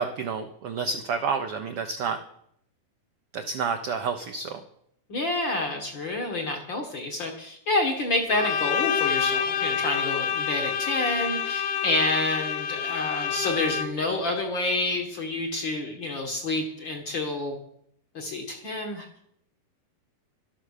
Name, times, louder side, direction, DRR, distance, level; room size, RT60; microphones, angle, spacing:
voice 1, 0.0-2.2 3.3-4.6, right 5 dB, 75° right, 6 dB, 1.3 m, -29 dB
voice 2, 5.1-17.6 18.1-19.1, left 2 dB, 45° left, 4 dB, 1.7 m, -28 dB
Bowed string instrument, 8.3-14.1, left 8 dB, 70° left, 1.5 m, -28 dB
12.5 x 12.0 x 6.5 m, 0.71 s
omnidirectional pair, 3.8 m